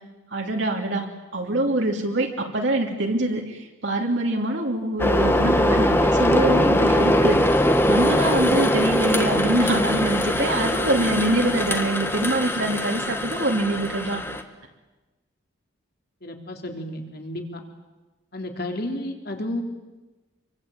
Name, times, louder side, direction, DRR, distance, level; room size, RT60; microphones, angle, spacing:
voice 1, 0.3-1.1 1.3-7.6 7.9-14.2, right 1 dB, 60° right, 1 dB, 2.9 m, -24 dB
sound 1, 5.0-14.4, left 1 dB, 10° left, 1.5 m, -21 dB
voice 2, 16.2-17.6 18.3-19.6, left 1 dB, 50° left, 3 dB, 3.8 m, -32 dB
27.0 x 24.0 x 8.9 m, 1.1 s
head